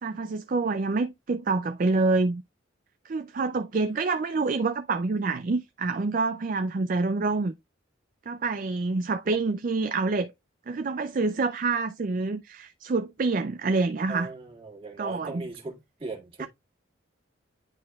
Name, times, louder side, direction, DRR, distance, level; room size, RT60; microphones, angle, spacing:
voice 1, 0.0-2.4 3.1-7.5 8.3-10.3 10.7-14.3 15.0-15.5 16.4-16.5, right 3 dB, 45° right, 0.4 m, -27 dB
voice 2, 14.1-16.5, right 3 dB, 30° right, 1.9 m, -39 dB
10.5 x 4.4 x 2.3 m
head